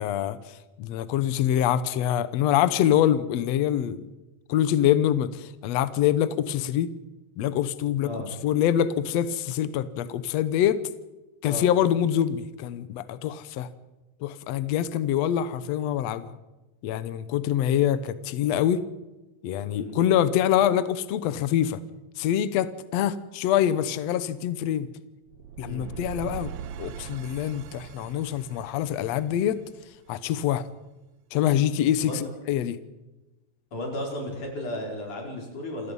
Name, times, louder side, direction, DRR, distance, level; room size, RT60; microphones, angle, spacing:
voice 1, 0.0-4.0 4.5-6.9 7.4-8.1 8.4-10.8 11.4-13.7 14.2-16.3 16.8-18.9 19.4-21.8 22.2-24.9 25.6-26.5 26.8-29.6 30.1-30.6 31.3-32.8, left 10 dB, 90° left, 14 dB, 1.4 m, -25 dB
voice 2, 19.7-20.0 25.6-26.0 32.0-32.2 33.7-35.9, left 1 dB, 50° left, 0 dB, 6.5 m, -34 dB
sound 1, 25.3-30.3, right 8 dB, 90° right, 3.0 m, -41 dB
28.0 x 17.0 x 5.5 m, 1.1 s
omnidirectional pair, 4.5 m